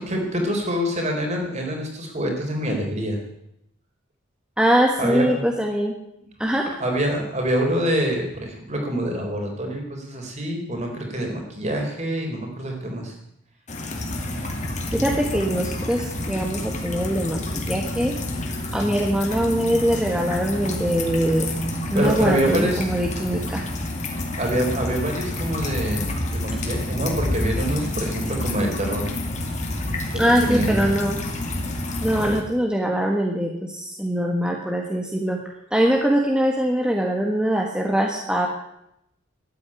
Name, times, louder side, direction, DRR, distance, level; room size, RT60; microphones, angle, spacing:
voice 1, 0.0-3.2 5.0-5.4 6.8-13.1 21.9-22.8 24.4-29.1 30.1-30.8, equal, 35° right, 1 dB, 3.8 m, -26 dB
voice 2, 4.6-5.9 6.4-6.7 14.9-18.1 18.7-21.5 21.9-23.7 30.2-31.2 32.0-35.4 35.7-38.5, equal, 5° right, 0 dB, 1.5 m, -22 dB
sound 1, 13.7-32.4, left 1 dB, 35° left, 2.5 m, -28 dB
13.5 x 9.5 x 9.8 m, 0.80 s
head